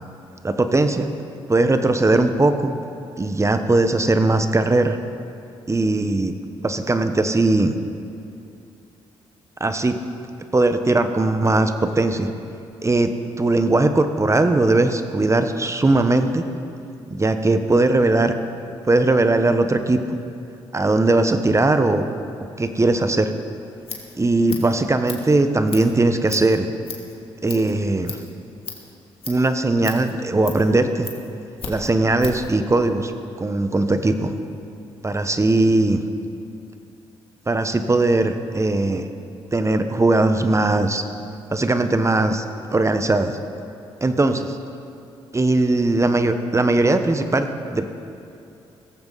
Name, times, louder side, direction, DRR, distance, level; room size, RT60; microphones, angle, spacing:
voice 1, 0.4-1.1 1.5-2.7 3.2-5.0 5.7-6.3 6.6-7.7 9.6-10.0 10.5-12.3 12.8-13.1 13.4-16.4 17.1-18.3 18.9-20.0 20.7-22.0 22.6-23.3 24.2-26.7 27.4-28.2 29.3-31.1 31.7-33.1 33.4-34.3 35.0-36.0 37.5-39.1 39.5-41.0 41.5-42.4 42.7-43.4 44.0-44.6 45.3-47.9, right 2 dB, 25° right, 8 dB, 1.2 m, -19 dB
Scissors, 23.6-32.5, left 5 dB, 50° left, 2.6 m, -38 dB
17.5 x 14.5 x 4.2 m, 2.7 s
supercardioid pair, 50°, 12 cm